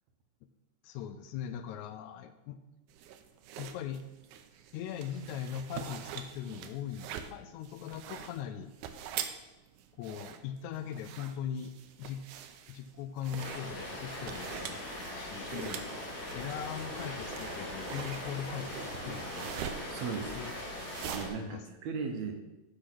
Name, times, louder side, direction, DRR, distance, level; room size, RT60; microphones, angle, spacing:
voice 1, 0.8-2.6 3.6-4.1 4.7-8.7 10.0-11.7 12.0-12.3 12.7-14.8 15.1-15.9 16.3-19.5 20.3-20.5 21.0-21.6, left 9 dB, 85° left, 10 dB, 2.0 m, -40 dB
sound 1, 2.9-21.2, right 9 dB, 90° right, 2.1 m, -44 dB
Rain, 13.4-21.3, left 1 dB, 70° left, 3.9 m, -41 dB
voice 2, 19.9-20.4 21.1-22.4, right 5 dB, 70° right, 5 dB, 2.1 m, -37 dB
8.1 x 6.2 x 6.0 m, 1.0 s
omnidirectional pair, 3.4 m